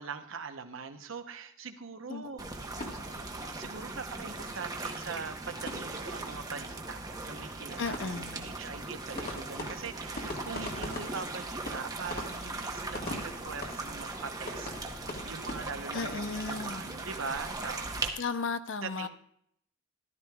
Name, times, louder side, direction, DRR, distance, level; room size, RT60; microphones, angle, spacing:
voice 1, 0.0-2.5 2.8-2.9 3.6-14.7 14.9-17.9 18.8-19.1, right 5 dB, 70° right, 8 dB, 0.8 m, -42 dB
sound 1, 2.4-18.1, right 2 dB, 20° right, 0.9 m, -39 dB
sound 2, 2.8-3.9 4.2-4.3 4.6-4.7 5.0-6.5 6.7-6.9 7.1-15.6, left 1 dB, 45° left, 1.7 m, -43 dB
voice 2, 7.8-8.5 15.9-16.9 18.2-19.1, left 4 dB, 60° left, 11 dB, 0.6 m, -35 dB
13.5 x 12.0 x 2.3 m, 0.69 s
head